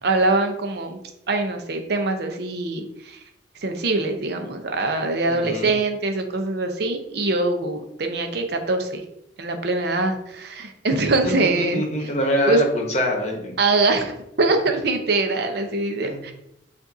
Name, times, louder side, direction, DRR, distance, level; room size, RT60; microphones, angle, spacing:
voice 1, 0.0-1.0 1.3-3.2 3.6-9.0 9.4-11.8 12.5-12.6 13.6-16.3, right 2 dB, 65° right, 5 dB, 0.7 m, -23 dB
voice 2, 5.3-5.7 11.2-11.3 11.6-13.5 16.0-16.2, left 1 dB, 40° left, 1 dB, 1.0 m, -24 dB
7.3 x 2.6 x 2.6 m, 0.80 s
head